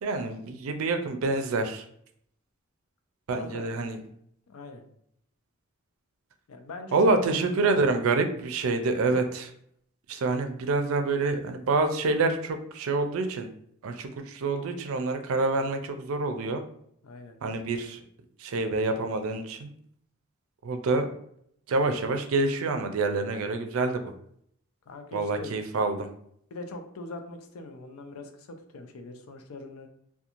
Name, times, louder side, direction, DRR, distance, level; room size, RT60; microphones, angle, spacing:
voice 1, 0.0-1.8 3.3-4.0 6.9-9.5 10.1-13.5 13.8-16.6 17.4-18.0 18.4-19.7 20.6-21.1 21.7-24.1 25.1-26.1, right 3 dB, 70° right, 7 dB, 0.4 m, -27 dB
voice 2, 3.3-3.7 4.5-4.8 6.5-7.2 7.6-7.9 9.1-9.2 17.0-17.4 24.9-25.6 26.5-29.9, left 2 dB, 85° left, 6 dB, 0.4 m, -41 dB
2.9 x 2.2 x 2.4 m, 0.69 s
head